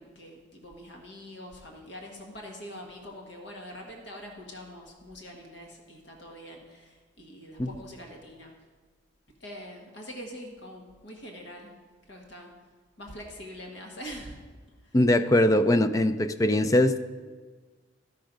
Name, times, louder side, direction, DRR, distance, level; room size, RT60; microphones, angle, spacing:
voice 1, 0.0-8.5 9.4-11.7 12.1-12.5 13.0-14.4 14.8-15.0 15.5-15.7, equal, 70° left, 1 dB, 1.4 m, -44 dB
voice 2, 14.9-17.0, left 1 dB, 20° left, 11 dB, 0.3 m, -21 dB
12.0 x 6.0 x 5.1 m, 1.5 s
head